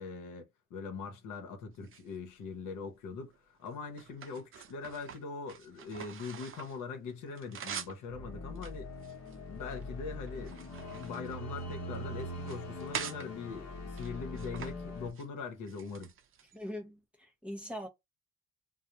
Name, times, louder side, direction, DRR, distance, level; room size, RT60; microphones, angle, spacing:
voice 1, 0.0-8.9 9.5-16.1, left 5 dB, 85° left, 0.8 m, -42 dB
sound 1, 1.7-2.7 3.3-6.8 7.1-8.0 8.5-9.8 10.3-12.0 12.4-13.3 13.9-14.7 15.0-15.3 15.7-16.6, right 7 dB, 45° right, 0.5 m, -45 dB
sound 2, 8.1-15.1, left 1 dB, 55° left, 1.0 m, -42 dB
voice 2, 16.5-17.9, equal, 5° right, 0.9 m, -42 dB
2.3 x 2.0 x 2.8 m
cardioid pair, 90°, 30 cm